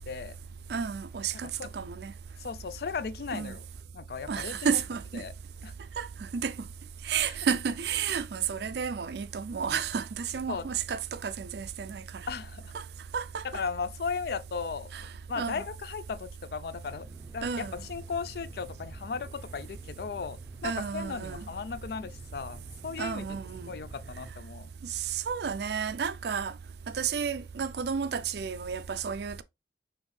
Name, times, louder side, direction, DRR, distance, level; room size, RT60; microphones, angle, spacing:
voice 1, 0.1-0.4 1.3-1.7 2.4-3.6 3.9-4.8 5.2-5.3 5.6-5.7 7.2-7.3 10.5-10.7 12.3-12.7 13.5-17.1 17.3-20.4 20.6-23.3 23.7-24.7, left 5 dB, 55° left, 0.4 m, -36 dB
voice 2, 0.7-2.1 3.3-3.6 4.3-5.2 6.0-6.1 6.3-6.5 7.0-12.3 12.7-12.8 13.1-13.6 14.9-15.1 15.4-15.6 17.4-17.8 20.6-21.5 23.0-23.7 24.8-26.5 26.9-29.4, right 6 dB, 65° right, 0.4 m, -32 dB
sound 1, 16.8-24.3, right 1 dB, 15° right, 0.5 m, -49 dB
5.3 x 3.1 x 3.2 m
head